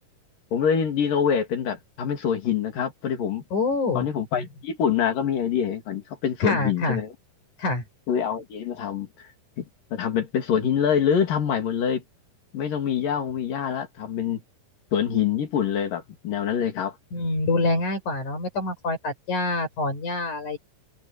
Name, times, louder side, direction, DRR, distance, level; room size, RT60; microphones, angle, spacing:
voice 1, 0.5-3.4 3.9-7.1 8.1-9.1 9.6-9.7 9.9-12.0 12.5-14.4 14.9-17.0, left 8 dB, 85° left, 4.4 m, -25 dB
voice 2, 3.5-4.1 6.4-7.0 7.6-7.8 17.1-20.6, left 2 dB, 65° left, 6.8 m, -26 dB
omnidirectional pair, 3.8 m